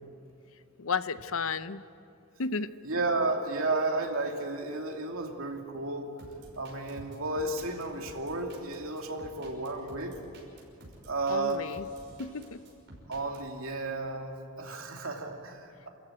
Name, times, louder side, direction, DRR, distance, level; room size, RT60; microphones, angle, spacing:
voice 1, 0.8-1.8 2.4-2.7 11.3-11.9 12.2-12.6, left 4 dB, 70° left, 13 dB, 0.7 m, -33 dB
voice 2, 2.8-6.1 6.6-10.1 11.1-11.6 13.1-15.9, right 2 dB, 75° right, 2 dB, 2.7 m, -32 dB
sound 1, 6.2-13.4, right 1 dB, 55° right, 5.9 m, -51 dB
29.5 x 14.0 x 9.0 m, 2.7 s
head